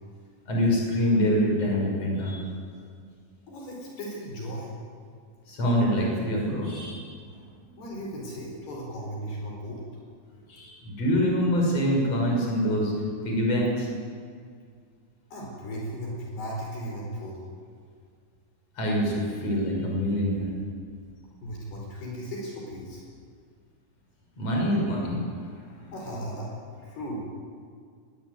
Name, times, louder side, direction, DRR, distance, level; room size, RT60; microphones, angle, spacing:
voice 1, 0.5-2.5 5.5-7.1 10.5-12.9 13.3-13.9 18.8-20.5 24.4-25.5, equal, 35° left, -1 dB, 7.0 m, -25 dB
voice 2, 3.5-4.8 7.8-9.8 15.3-17.4 21.4-23.0 25.9-26.5 26.8-27.2, equal, 65° left, -1 dB, 6.5 m, -36 dB
22.5 x 20.5 x 9.5 m, 2.1 s
omnidirectional pair, 4.9 m